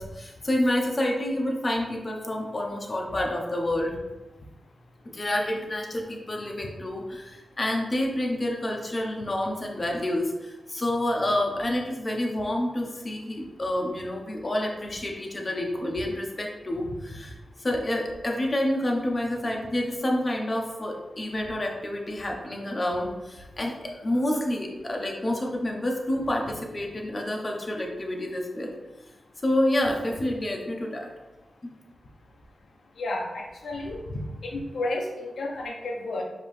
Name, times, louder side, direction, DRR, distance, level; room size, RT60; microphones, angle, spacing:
voice 1, 0.0-3.9 5.1-28.7 29.4-31.1, left 1 dB, 35° left, 0 dB, 0.9 m, -28 dB
voice 2, 33.0-36.2, left 2 dB, 85° left, -1 dB, 0.6 m, -32 dB
5.1 x 2.9 x 3.3 m, 1.1 s
cardioid pair, 70°, 0 cm